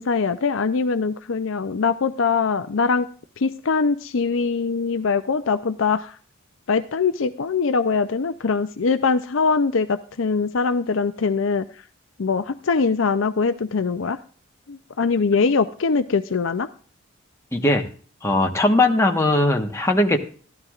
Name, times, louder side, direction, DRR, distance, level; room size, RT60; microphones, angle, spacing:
voice 1, 0.0-3.1 3.4-6.2 6.7-11.7 12.2-14.2 14.7-16.7, left 4 dB, 65° left, 11 dB, 0.5 m, -22 dB
voice 2, 17.5-17.9 18.2-20.2, left 1 dB, 15° left, 2 dB, 1.3 m, -19 dB
13.0 x 12.5 x 2.5 m, 0.42 s
head